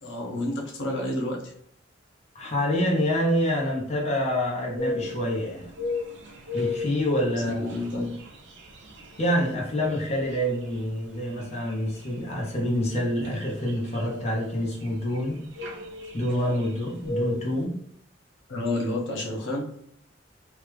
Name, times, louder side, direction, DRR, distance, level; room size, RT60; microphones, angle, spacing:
voice 1, 0.0-1.5 7.3-8.1 18.5-19.8, left 1 dB, 75° left, -1 dB, 0.8 m, -30 dB
voice 2, 2.3-5.7 6.5-7.7 9.2-15.4 16.1-17.8, equal, 35° left, -2 dB, 0.8 m, -27 dB
sound 1, 4.8-17.6, left 2 dB, 70° right, 0.8 m, -37 dB
3.1 x 2.5 x 3.3 m, 0.68 s
head